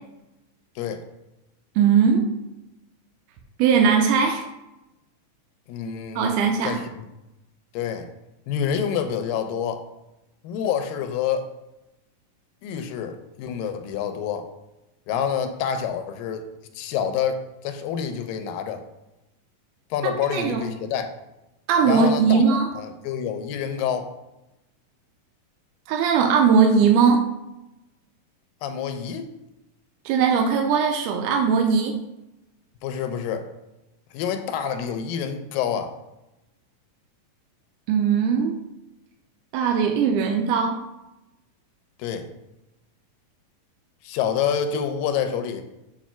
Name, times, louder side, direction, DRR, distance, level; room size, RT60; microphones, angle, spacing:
voice 1, 1.8-2.2 3.6-4.4 6.2-6.8 20.0-20.6 21.7-22.7 25.9-27.2 30.1-31.9 37.9-38.6 39.5-40.8, right 6 dB, 80° right, 2 dB, 2.0 m, -19 dB
voice 2, 5.7-6.3 6.6-7.1 7.7-8.1 8.5-9.8 10.4-11.5 12.6-14.5 15.1-16.5 16.8-18.9 19.9-21.1 21.9-24.1 28.6-29.3 32.8-33.5 34.1-35.9 42.0-42.3 44.0-45.6, left 8 dB, 85° left, 8 dB, 2.3 m, -27 dB
7.2 x 2.6 x 5.6 m, 0.94 s
omnidirectional pair, 4.0 m